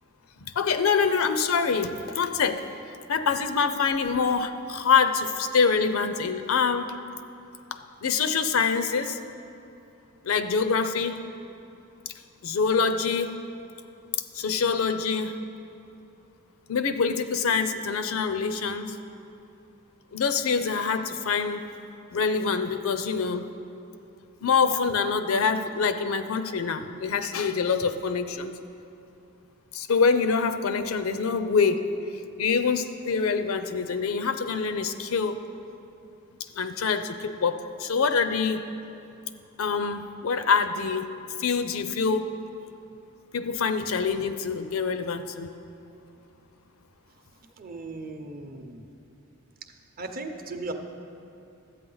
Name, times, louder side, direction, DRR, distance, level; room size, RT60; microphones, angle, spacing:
voice 1, 0.4-2.6 3.1-7.0 7.7-9.2 10.2-11.2 12.4-13.4 14.3-15.4 16.7-19.0 20.1-21.6 22.1-23.5 24.4-28.5 29.7-31.9 32.4-35.4 36.5-38.6 39.6-41.1 41.4-42.3 43.3-45.5, left 5 dB, 80° left, 10 dB, 0.5 m, -25 dB
voice 2, 47.6-48.9 50.0-50.7, right 2 dB, 45° right, 5 dB, 0.7 m, -37 dB
12.5 x 8.5 x 3.9 m, 2.7 s
head